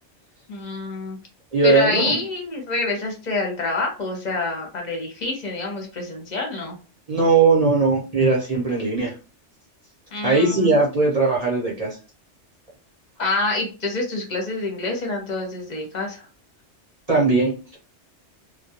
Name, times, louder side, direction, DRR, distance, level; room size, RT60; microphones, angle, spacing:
voice 1, 0.5-1.2 1.6-6.8 10.1-10.7 13.2-16.2, left 2 dB, 45° left, 1 dB, 0.8 m, -27 dB
voice 2, 1.5-2.2 7.1-9.1 10.2-12.0 17.1-17.8, right 3 dB, 35° right, -4 dB, 0.8 m, -19 dB
2.3 x 2.1 x 2.8 m, 0.34 s
omnidirectional pair, 1.2 m